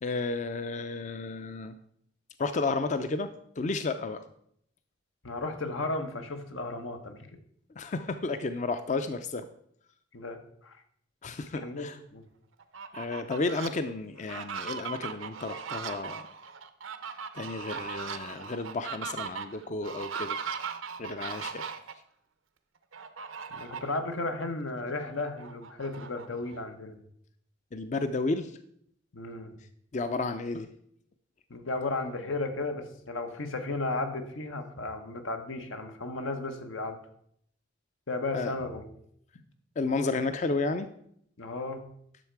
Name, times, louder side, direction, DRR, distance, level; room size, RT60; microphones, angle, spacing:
voice 1, 0.0-1.8 2.4-3.3 3.6-4.2 7.8-9.5 11.2-12.0 12.9-16.3 17.0-20.4 21.0-21.7 27.7-28.6 29.9-30.7 38.3-38.5 39.8-40.9, left 3 dB, 35° left, 10 dB, 0.4 m, -32 dB
voice 2, 5.2-7.3 10.1-10.8 11.6-12.2 23.5-27.0 29.1-29.6 31.5-37.0 38.1-38.9 41.4-41.8, left 2 dB, 90° left, 6 dB, 1.2 m, -34 dB
Fowl, 12.6-13.7 14.2-21.9 22.9-24.0 24.4-24.5 24.9-26.6, right 6 dB, 85° right, 0.7 m, -39 dB
10.5 x 6.5 x 4.6 m, 0.69 s
head